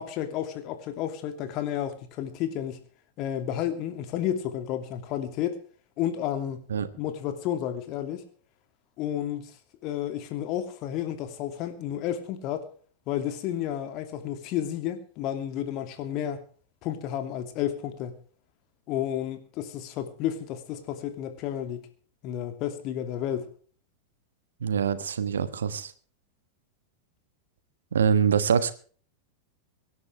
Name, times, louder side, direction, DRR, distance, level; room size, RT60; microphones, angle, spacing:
voice 1, 0.0-2.8 3.2-5.6 6.0-6.7 7.0-8.2 9.0-9.5 9.8-12.7 13.1-16.4 16.8-18.2 18.9-21.9 22.2-23.5, left 10 dB, 40° left, 2.6 m, -31 dB
voice 2, 24.6-25.9 27.9-28.7, right 7 dB, 65° right, 1.3 m, -24 dB
24.5 x 11.0 x 3.5 m
figure-of-eight pair, 90°, 0 cm